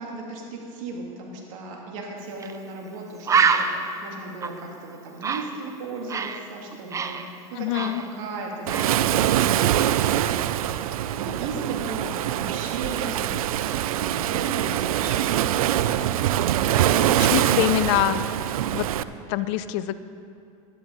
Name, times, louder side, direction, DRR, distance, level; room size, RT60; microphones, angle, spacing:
voice 1, 0.0-10.1 11.2-14.7 15.0-15.5 15.8-17.4, right 3 dB, 65° right, 0 dB, 2.4 m, -36 dB
Bird, 2.4-2.6 2.9-3.0 3.3-6.4 6.7-8.4 8.7-9.0, right 5 dB, 15° right, 0.5 m, -26 dB
voice 2, 7.5-8.0 17.3-18.3 18.7-18.9 19.3-19.9, left 14 dB, 55° left, 14 dB, 0.5 m, -24 dB
Waves surf, 8.7-19.0, right 12 dB, 80° right, 0.4 m, -23 dB
11.5 x 11.0 x 3.9 m, 2.4 s
hypercardioid pair, 110°, 18 cm